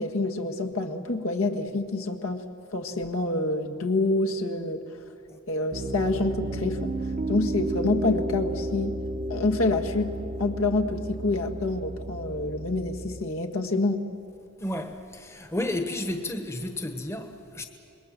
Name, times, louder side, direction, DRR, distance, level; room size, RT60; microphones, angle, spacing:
voice 1, 0.0-2.4 2.7-4.8 5.5-6.9 7.3-9.0 9.3-10.1 10.4-14.0, left 2 dB, 75° left, 1.7 m, -27 dB
Piano, 5.7-13.2, right 2 dB, 35° right, 0.8 m, -32 dB
voice 2, 14.6-17.7, left 1 dB, 10° left, 1.1 m, -32 dB
27.0 x 21.5 x 7.5 m
head